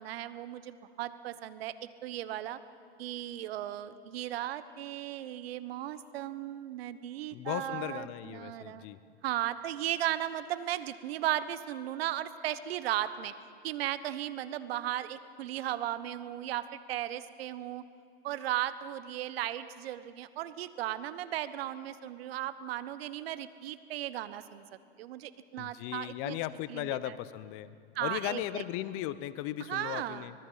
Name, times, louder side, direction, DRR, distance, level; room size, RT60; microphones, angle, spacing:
voice 1, 0.0-2.6 3.0-8.9 9.2-13.3 13.6-17.8 18.2-24.7 25.0-26.4 26.7-27.1 27.9-28.6 29.7-30.3, right 13 dB, 65° right, 14 dB, 1.2 m, -36 dB
voice 2, 7.3-9.0 25.6-27.7 28.0-30.3, left 14 dB, 40° left, 15 dB, 0.9 m, -37 dB
25.0 x 20.0 x 5.7 m, 2.4 s
hypercardioid pair, 125°, 32 cm